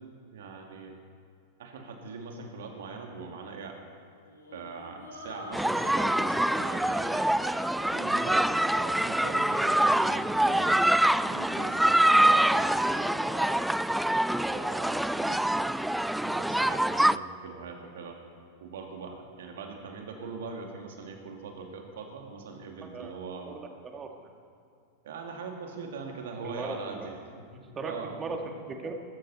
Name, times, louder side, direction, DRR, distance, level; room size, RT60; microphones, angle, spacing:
voice 1, 0.3-0.9 1.6-3.8 4.5-7.1 7.9-13.6 14.5-15.4 16.2-18.2 18.6-23.5 25.0-27.1 27.5-28.1, right 4 dB, 60° right, 2 dB, 2.6 m, -42 dB
sound 1, 4.2-9.5, left 2 dB, 80° left, 3.7 m, -47 dB
sound 2, 5.5-17.2, right 1 dB, 5° right, 0.3 m, -25 dB
voice 2, 22.8-23.1 23.5-24.1 26.4-27.1 27.8-27.9 28.2-28.9, right 4 dB, 20° right, 3 dB, 1.9 m, -37 dB
20.5 x 13.0 x 4.3 m, 2.4 s
figure-of-eight pair, 90°, 0 cm